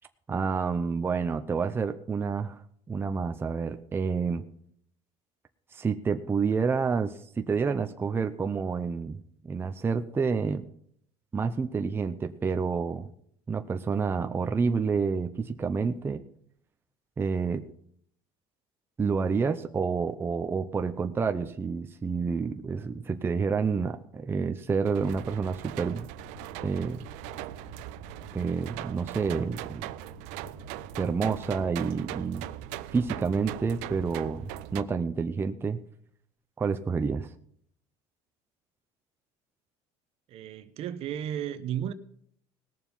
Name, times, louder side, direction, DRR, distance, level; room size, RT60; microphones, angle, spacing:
voice 1, 0.3-2.6 2.9-4.4 5.7-9.2 9.4-10.7 11.3-13.1 13.5-16.2 17.2-17.6 19.0-26.1 26.6-27.1 28.3-29.9 31.0-32.5 32.9-35.8 36.6-37.3, right 5 dB, 20° right, 0.7 m, -29 dB
sound 1, 24.8-34.8, right 17 dB, 80° right, 0.6 m, -40 dB
sound 2, 26.1-34.6, left 5 dB, 90° left, 5.8 m, -51 dB
voice 2, 40.3-41.9, right 10 dB, 55° right, 0.9 m, -33 dB
18.5 x 7.1 x 5.4 m
cardioid pair, 130°, 12 cm